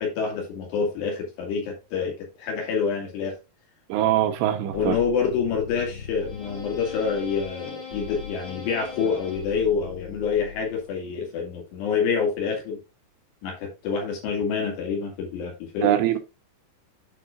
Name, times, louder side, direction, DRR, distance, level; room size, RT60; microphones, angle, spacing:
voice 1, 0.0-3.3 4.7-12.8 13.4-15.9, left 6 dB, 70° left, 4.2 m, -27 dB
voice 2, 3.9-5.0 15.8-16.2, right 12 dB, 80° right, 2.9 m, -22 dB
sound 1, 4.7-11.0, left 6 dB, 55° left, 1.1 m, -39 dB
11.5 x 4.8 x 2.5 m
omnidirectional pair, 5.1 m